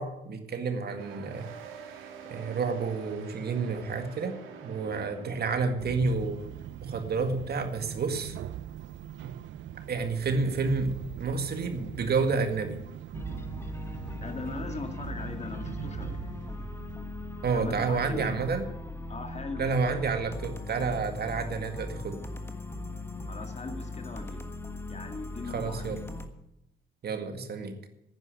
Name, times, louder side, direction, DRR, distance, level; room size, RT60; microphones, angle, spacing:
voice 1, 0.0-4.4 4.6-6.4 6.8-8.4 9.9-12.8 17.4-18.7 19.6-22.2 25.5-26.0 27.0-27.8, right 4 dB, 55° right, 7 dB, 1.9 m, -30 dB
sound 1, 0.9-6.0, right 7 dB, 90° right, 2.3 m, -46 dB
sound 2, 5.8-19.4, right 11 dB, 70° right, 0.6 m, -42 dB
sound 3, 13.1-26.3, left 2 dB, 10° left, 1.5 m, -39 dB
voice 2, 14.2-16.3 17.5-18.3 19.1-19.6 23.3-24.4 24.9-25.9, left 3 dB, 35° left, 5 dB, 2.2 m, -39 dB
10.5 x 9.7 x 8.4 m, 0.83 s
cardioid pair, 90°, 20 cm